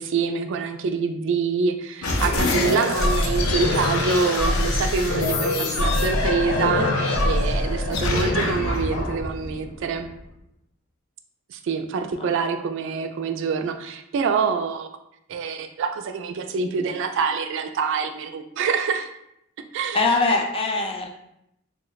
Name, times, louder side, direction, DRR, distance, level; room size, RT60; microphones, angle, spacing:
voice 1, 0.0-10.1 11.5-14.9 15.3-19.1 19.7-20.0, right 5 dB, 60° right, 7 dB, 0.3 m, -26 dB
sound 1, 2.0-10.2, left 2 dB, 80° left, 0.6 m, -23 dB
voice 2, 19.9-21.1, left 3 dB, 25° left, 1 dB, 0.5 m, -22 dB
3.0 x 2.1 x 3.9 m, 0.78 s
head